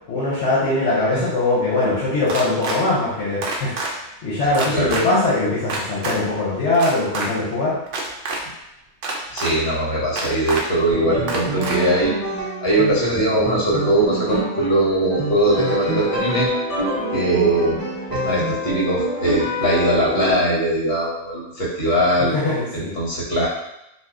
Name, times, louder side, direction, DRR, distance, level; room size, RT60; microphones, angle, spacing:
voice 1, 0.1-3.7 4.2-7.8 22.3-22.9, left 2 dB, 75° left, -7 dB, 1.1 m, -21 dB
sound 1, 2.3-2.8 3.4-3.9 4.5-5.0 5.7-6.1 6.7-7.3 7.9-8.4 9.0-9.5 10.2-10.6 11.3-11.8, right 3 dB, 65° right, 0.7 m, -26 dB
voice 2, 9.3-12.1 12.6-16.5 17.1-17.8 18.1-22.3 22.7-23.5, right 1 dB, 60° left, -5 dB, 1.2 m, -20 dB
sound 2, 10.9-20.3, equal, 40° left, 1.2 m, -26 dB
2.7 x 2.3 x 3.5 m, 0.88 s
omnidirectional pair, 1.2 m